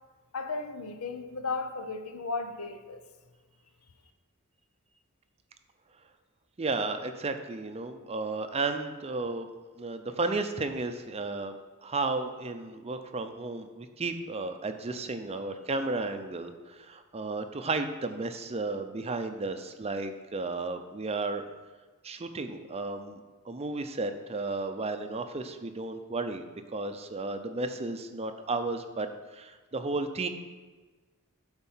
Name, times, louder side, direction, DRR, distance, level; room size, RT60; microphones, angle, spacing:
voice 1, 0.3-3.0, left 3 dB, 75° left, 8 dB, 0.8 m, -35 dB
voice 2, 6.6-9.5 9.8-11.6 11.8-21.4 22.0-23.2 23.5-26.5 26.7-29.1 29.3-30.3, right 3 dB, 30° right, 7 dB, 0.6 m, -33 dB
12.5 x 4.4 x 5.7 m, 1.3 s
head